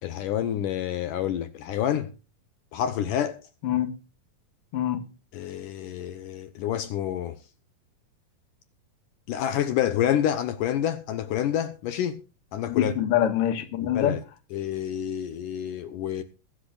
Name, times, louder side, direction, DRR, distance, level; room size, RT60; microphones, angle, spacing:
voice 1, 0.0-2.1 2.7-3.4 5.3-7.4 9.3-12.2 12.5-12.9 13.8-14.2 14.5-16.2, left 10 dB, 75° left, 2.4 m, -28 dB
voice 2, 4.7-5.0 12.7-14.2, left 11 dB, 50° left, 2.2 m, -24 dB
22.0 x 10.5 x 2.5 m
omnidirectional pair, 3.9 m